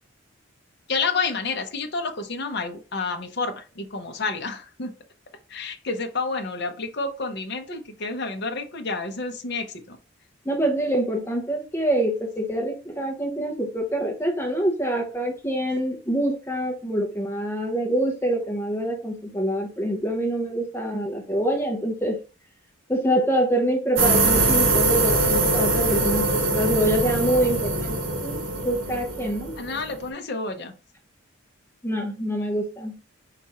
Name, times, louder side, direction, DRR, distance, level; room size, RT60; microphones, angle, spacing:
voice 1, 0.9-4.9 5.5-10.0 29.6-30.7, left 4 dB, 50° left, 5 dB, 0.7 m, -29 dB
voice 2, 10.4-22.2 22.9-28.4 28.6-29.5 31.8-33.0, right 1 dB, 10° left, 1 dB, 0.7 m, -25 dB
sound 1, 24.0-30.1, right 2 dB, 60° right, 1.4 m, -23 dB
4.7 x 2.5 x 4.1 m, 0.33 s
head